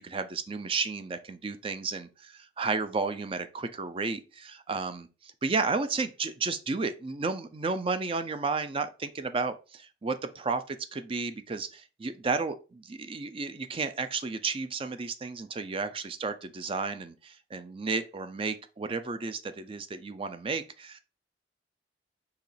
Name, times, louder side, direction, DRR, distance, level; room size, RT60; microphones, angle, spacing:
voice 1, 0.0-21.0, right 4 dB, 30° right, 0.4 m, -32 dB
4.7 x 3.1 x 3.2 m
head